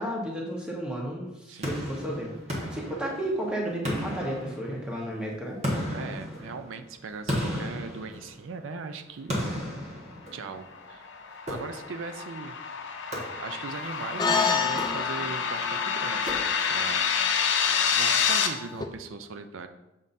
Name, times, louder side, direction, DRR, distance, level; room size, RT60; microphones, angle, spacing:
voice 1, 0.0-5.6, right 1 dB, 5° right, -2 dB, 1.1 m, -33 dB
voice 2, 1.5-1.8 5.9-9.4 10.3-11.1 11.5-12.6 13.4-17.2 17.9-19.7, right 4 dB, 80° right, 8 dB, 0.4 m, -39 dB
sound 1, 1.6-3.4 3.8-5.0 5.6-8.7 9.3-10.7 11.5-12.1 13.1-13.8 14.6-15.4 16.3-16.9, equal, 35° right, 1.3 m, -34 dB
sound 2, 10.8-18.5, left 6 dB, 70° left, 0.6 m, -28 dB
sound 3, 14.2-18.8, left 5 dB, 20° left, 0.4 m, -30 dB
7.2 x 5.4 x 2.6 m, 0.93 s
head